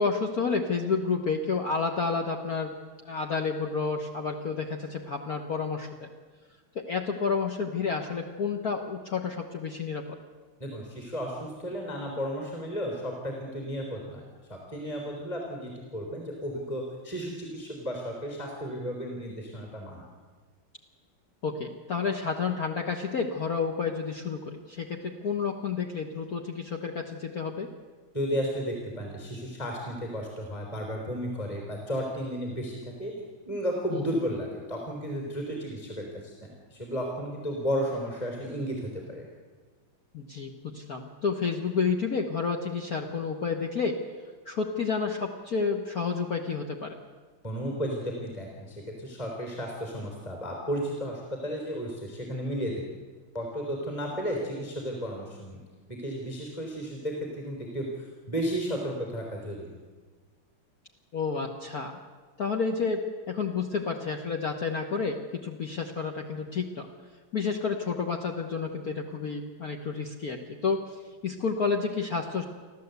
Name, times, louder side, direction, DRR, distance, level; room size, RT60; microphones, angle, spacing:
voice 1, 0.0-2.7 3.0-6.1 6.7-10.0 21.4-27.7 33.9-34.1 40.1-43.9 44.4-46.9 54.4-54.5 61.1-61.9 62.4-63.0 63.3-66.9 67.3-70.8 71.2-72.4, left 5 dB, 50° left, 2 dB, 1.6 m, -30 dB
voice 2, 10.6-14.2 14.5-20.1 28.1-33.1 33.5-39.3 47.4-52.8 53.3-55.6 55.9-59.8, equal, 15° left, 0 dB, 3.7 m, -33 dB
30.0 x 12.0 x 8.2 m, 1.4 s
omnidirectional pair, 2.3 m